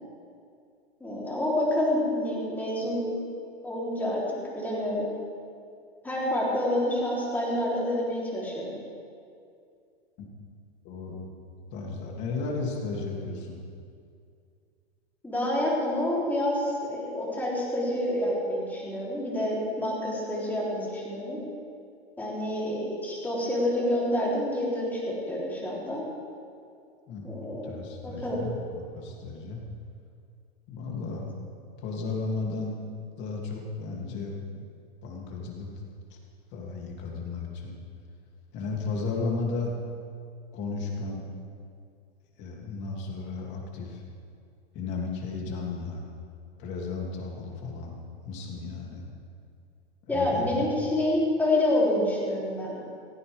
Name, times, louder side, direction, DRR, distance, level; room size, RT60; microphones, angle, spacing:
voice 1, 1.0-3.2 3.6-4.2 4.5-5.1 6.0-8.8 15.2-21.4 22.2-26.0 27.2-28.4 50.1-52.8, left 1 dB, 5° left, -6 dB, 3.5 m, -28 dB
voice 2, 10.8-11.3 11.7-13.6 27.1-29.6 30.7-31.4 31.8-32.8 33.1-34.7 35.0-35.7 36.1-36.2 36.5-37.7 38.5-39.8 40.5-41.3 42.4-44.0 44.7-46.0 46.6-49.0 50.0-50.7, left 3 dB, 35° left, -1 dB, 2.8 m, -34 dB
27.5 x 9.4 x 3.6 m, 2.3 s
hypercardioid pair, 145°, 33 cm